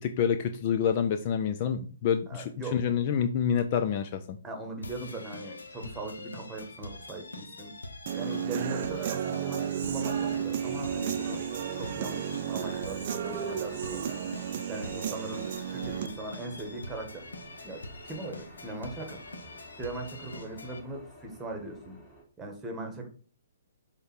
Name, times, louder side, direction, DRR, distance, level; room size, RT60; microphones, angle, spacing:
voice 1, 0.0-4.4, left 8 dB, 40° left, 8 dB, 0.5 m, -28 dB
voice 2, 2.3-2.8 4.4-7.7 8.1-11.4 11.7-14.1 14.7-17.3 17.6-19.2 19.8-22.0 22.4-23.1, right 2 dB, 10° right, 4 dB, 1.6 m, -39 dB
sound 1, 4.8-20.8, left 2 dB, 75° left, 1.0 m, -45 dB
Human voice / Guitar, 8.1-16.1, right 9 dB, 45° right, 0.6 m, -33 dB
sound 2, 10.1-22.2, equal, 15° left, 2.8 m, -51 dB
6.6 x 3.7 x 4.4 m, 0.41 s
figure-of-eight pair, 125°, 0 cm